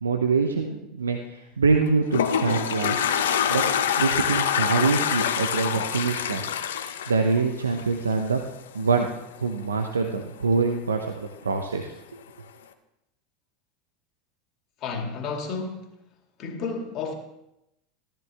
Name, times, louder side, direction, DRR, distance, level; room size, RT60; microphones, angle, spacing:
voice 1, 0.0-3.0 3.5-3.7 4.0-6.5 7.1-8.4 8.7-9.1 9.4-12.2, right 4 dB, 90° right, 0.8 m, -25 dB
Toilet flush, 1.8-8.1, left 8 dB, 75° left, 0.9 m, -25 dB
voice 2, 14.8-16.0 16.4-17.1, left 4 dB, 45° left, 2.3 m, -31 dB
13.5 x 13.5 x 3.5 m
hypercardioid pair, 85°, 0 cm